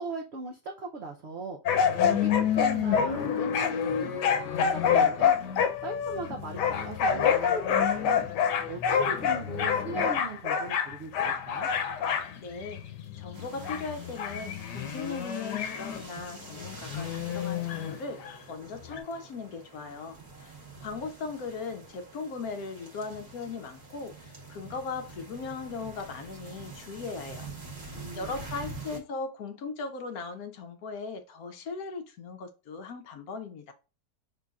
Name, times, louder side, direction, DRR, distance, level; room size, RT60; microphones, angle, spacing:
voice 1, 0.0-1.6 1.9-5.4 5.8-8.2 8.7-11.7 27.9-28.3 28.9-29.0, right 3 dB, 65° right, 0.6 m, -39 dB
sound 1, 1.7-16.0 16.6-18.4 18.9-19.0, left 7 dB, 85° left, 1.3 m, -27 dB
voice 2, 12.4-12.8 13.2-18.2 18.5-20.5 20.8-27.5 28.1-33.7, left 4 dB, 70° left, 1.0 m, -38 dB
sound 2, 13.3-29.0, right 3 dB, 45° right, 1.3 m, -46 dB
5.3 x 3.7 x 2.3 m
omnidirectional pair, 1.8 m